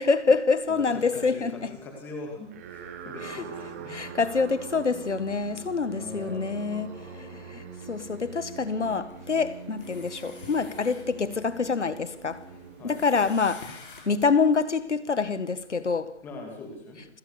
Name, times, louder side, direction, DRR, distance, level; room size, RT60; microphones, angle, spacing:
voice 1, 0.0-1.7 3.2-3.4 3.9-6.9 7.2-12.4 12.8-16.2, left 4 dB, 80° left, 1.9 m, -26 dB
voice 2, 0.9-4.0 5.9-7.6 12.8-13.1 16.2-17.1, left 2 dB, 5° left, 2.4 m, -42 dB
sound 1, 2.4-13.9, right 6 dB, 10° right, 1.4 m, -43 dB
sound 2, 9.1-14.3, left 4 dB, 50° left, 5.7 m, -49 dB
28.0 x 16.0 x 6.8 m
hypercardioid pair, 170°, 35 cm